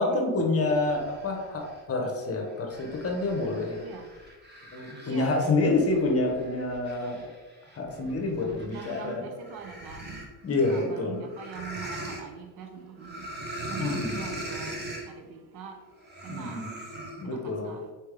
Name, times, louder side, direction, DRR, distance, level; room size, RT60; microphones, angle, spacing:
voice 1, 0.0-3.8 4.7-7.3 7.8-9.3 10.4-11.2 13.7-14.2 16.3-16.7 17.2-17.8, left 2 dB, 30° left, 2 dB, 1.1 m, -28 dB
sound 1, 0.7-1.8 2.4-9.1 9.4-12.2 13.0-15.1 16.0-17.2, right 1 dB, 25° right, 1.0 m, -41 dB
voice 2, 5.0-6.0 8.6-10.3 10.6-13.3 13.7-15.8 16.2-16.6 17.2-17.9, right 6 dB, 60° right, 5 dB, 0.8 m, -43 dB
4.5 x 3.4 x 3.3 m, 1.3 s
supercardioid pair, 90°, 44 cm